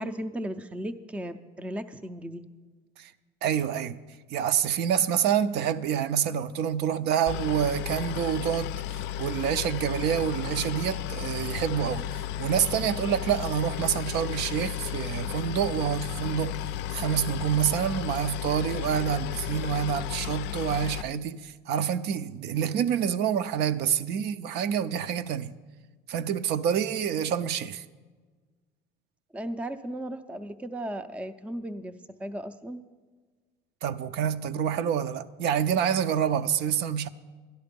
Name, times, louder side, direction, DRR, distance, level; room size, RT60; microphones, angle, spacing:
voice 1, 0.0-2.5 29.3-31.9 32.2-32.8, right 1 dB, 5° right, 0.4 m, -36 dB
voice 2, 3.4-4.0 4.3-8.8 9.2-16.6 16.9-25.5 26.1-27.8 33.8-37.1, right 9 dB, 60° right, 0.5 m, -27 dB
Boat Water vehicle, 7.3-21.0, left 11 dB, 70° left, 0.4 m, -34 dB
12.0 x 11.5 x 5.2 m
cardioid pair, 145°, 19 cm